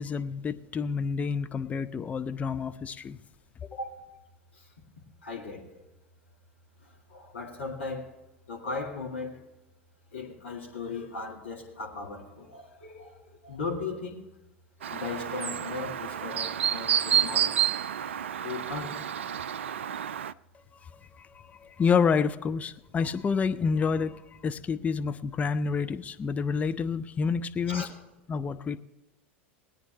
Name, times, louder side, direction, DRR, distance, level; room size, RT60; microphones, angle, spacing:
voice 1, 0.0-3.2 21.3-27.9 28.3-28.8, left 5 dB, 20° left, 0.6 m, -28 dB
voice 2, 5.2-5.7 6.8-8.1 8.5-9.4 10.1-13.2 13.4-14.2 14.8-17.6 18.4-19.0 27.7-27.9, left 4 dB, 70° left, 2.3 m, -37 dB
Chirp tweet, 14.8-20.3, right 9 dB, 70° right, 0.4 m, -29 dB
20.5 x 9.4 x 3.1 m
figure-of-eight pair, 85°, 7 cm